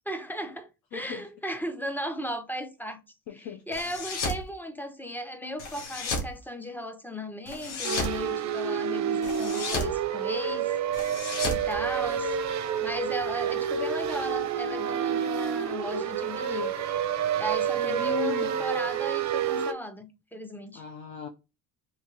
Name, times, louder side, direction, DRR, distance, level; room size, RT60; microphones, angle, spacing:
voice 1, 0.1-3.0 3.3-10.8 11.4-12.4 12.8-16.7 17.3-20.8, equal, 5° left, 0.6 m, -36 dB
voice 2, 0.9-1.2 3.3-3.6 17.7-18.5 20.7-21.3, left 8 dB, 55° left, 0.7 m, -38 dB
sound 1, 3.7-4.4 5.6-6.3 7.5-8.2 9.2-10.0 10.9-12.4, left 2 dB, 90° left, 1.0 m, -33 dB
sound 2, 7.8-19.7, right 8 dB, 45° right, 0.6 m, -29 dB
2.9 x 2.8 x 3.7 m
supercardioid pair, 75°, 40 cm